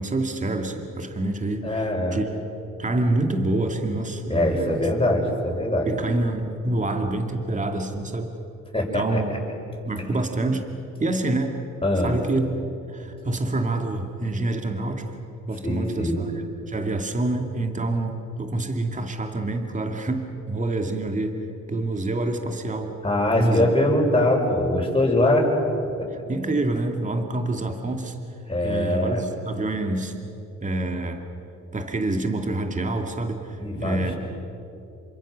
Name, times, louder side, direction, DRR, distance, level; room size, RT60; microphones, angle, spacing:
voice 1, 0.0-2.3 2.8-4.9 5.9-8.3 8.9-9.3 9.9-10.7 11.0-11.6 12.0-12.6 12.9-15.0 15.5-21.4 21.7-22.9 23.4-23.7 26.1-28.2 28.6-30.1 30.6-31.2 31.7-34.1, right 2 dB, 25° right, 4 dB, 2.3 m, -27 dB
voice 2, 1.6-2.2 4.3-5.9 8.7-9.2 11.8-12.2 15.6-16.2 23.0-25.5 28.5-29.3 33.6-34.2, left 1 dB, 20° left, -1 dB, 6.9 m, -22 dB
28.0 x 25.0 x 6.4 m, 2.8 s
cardioid pair, 90°, 30 cm